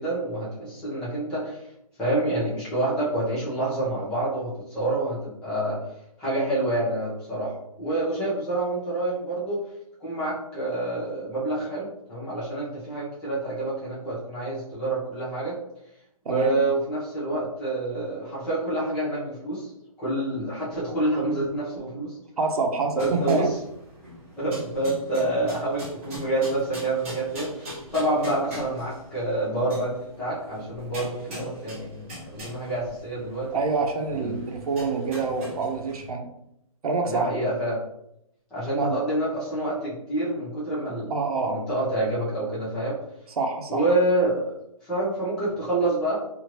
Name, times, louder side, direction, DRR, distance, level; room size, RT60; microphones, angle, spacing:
voice 1, 0.0-1.7 2.0-5.8 6.2-9.6 10.0-15.6 16.3-19.7 20.0-22.2 23.0-23.6 24.4-33.5 34.2-34.5 37.1-37.8 38.5-41.1 41.4-43.0 43.7-44.4 44.8-46.2, right 2 dB, 5° left, -9 dB, 0.4 m, -27 dB
voice 2, 16.2-16.5 22.4-23.5 33.5-36.3 36.8-37.3 38.8-39.0 41.1-41.6 43.4-43.8, right 4 dB, 80° right, 4 dB, 0.7 m, -26 dB
sound 1, 23.0-36.1, equal, 20° right, 0.7 m, -41 dB
2.8 x 2.5 x 2.9 m, 0.79 s
hypercardioid pair, 170°, 19 cm